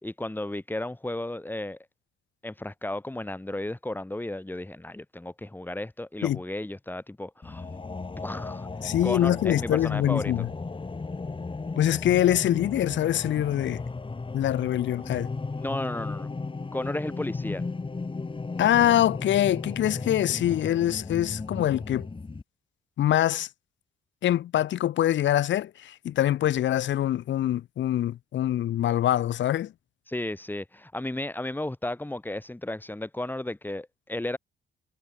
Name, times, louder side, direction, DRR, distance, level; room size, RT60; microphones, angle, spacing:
voice 1, 0.0-1.8 2.4-7.9 8.2-8.7 9.0-10.3 15.6-16.3 16.7-17.6 30.1-34.4, left 1 dB, 10° left, 4.9 m, -34 dB
sound 1, 7.4-22.4, left 3 dB, 25° left, 7.2 m, -35 dB
voice 2, 8.8-10.5 11.8-13.8 14.3-15.3 18.6-22.1 23.0-23.5 24.2-29.7, left 12 dB, 70° left, 1.3 m, -24 dB
cardioid pair, 90°, 20 cm